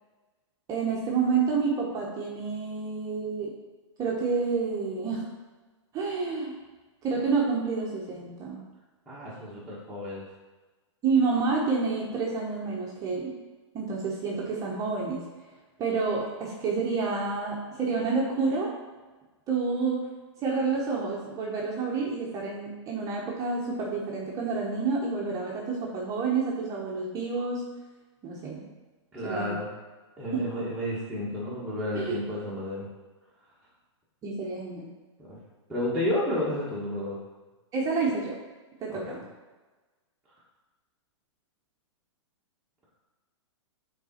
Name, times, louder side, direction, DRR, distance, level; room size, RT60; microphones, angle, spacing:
voice 1, 0.7-3.6 4.0-5.3 5.9-6.5 7.0-8.6 11.0-13.4 13.7-15.3 15.8-18.7 19.5-20.1 20.4-27.7 28.2-28.7 29.2-29.6 30.3-30.6 31.9-32.2 34.2-34.9 37.7-38.4 38.8-39.2, right 4 dB, 20° right, -3 dB, 1.0 m, -29 dB
voice 2, 9.1-10.2 29.1-29.7 30.2-32.9 35.2-35.4 35.7-37.2 38.9-39.0, left 1 dB, ahead, -10 dB, 1.4 m, -31 dB
6.6 x 4.0 x 4.3 m, 1.3 s
hypercardioid pair, 145°, 16 cm